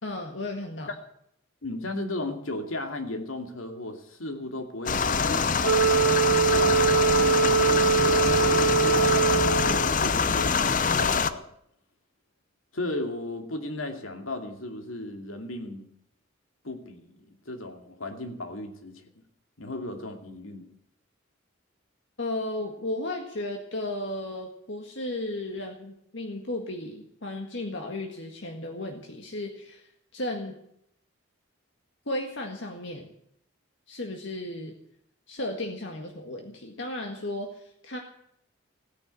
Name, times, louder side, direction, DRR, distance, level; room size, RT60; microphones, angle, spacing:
voice 1, 0.0-0.9 22.2-30.6 32.1-33.1 33.9-34.7 35.3-38.0, left 1 dB, 60° left, 2 dB, 1.8 m, -34 dB
voice 2, 1.6-5.5 6.4-11.4 12.7-15.9 16.6-19.0 19.6-20.7, left 2 dB, 80° left, 5 dB, 2.5 m, -35 dB
sound 1, 4.9-11.3, left 5 dB, 40° left, 0.7 m, -24 dB
Wind instrument woodwind instrument, 5.6-10.0, right 6 dB, 85° right, 0.9 m, -23 dB
16.0 x 10.5 x 8.3 m, 0.73 s
head